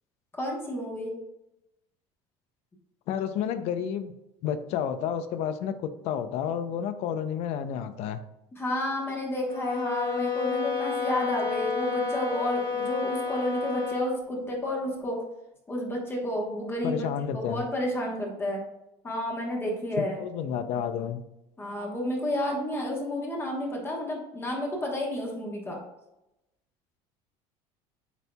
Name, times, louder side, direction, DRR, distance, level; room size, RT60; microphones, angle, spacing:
voice 1, 0.3-1.1 8.6-15.2 15.7-17.1 17.3-18.6 19.0-20.2 21.6-25.8, left 1 dB, 20° left, -1 dB, 1.0 m, -31 dB
voice 2, 3.1-4.1 4.4-8.2 16.8-17.6 20.0-21.2, left 8 dB, 60° left, 10 dB, 0.5 m, -30 dB
sound 1, 9.5-14.2, left 5 dB, 35° left, 1.6 m, -30 dB
8.1 x 2.7 x 2.2 m, 0.89 s
cardioid pair, 130°, 13 cm